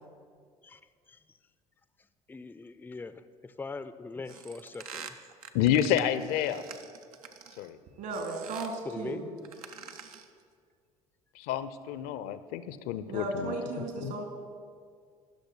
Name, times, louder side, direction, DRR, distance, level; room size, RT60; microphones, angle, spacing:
voice 1, 2.3-5.1 8.9-9.2, left 3 dB, 10° left, 13 dB, 0.5 m, -41 dB
sound 1, 4.3-7.7 8.1-8.8 9.4-10.4, right 7 dB, 75° right, 0.7 m, -46 dB
voice 2, 5.5-6.6 7.6-7.8 11.4-14.1, left 10 dB, 55° left, 13 dB, 0.6 m, -29 dB
voice 3, 8.0-9.3 13.1-14.2, right 2 dB, 60° right, 3 dB, 2.3 m, -35 dB
19.0 x 6.6 x 4.7 m, 2.1 s
figure-of-eight pair, 55°, 19 cm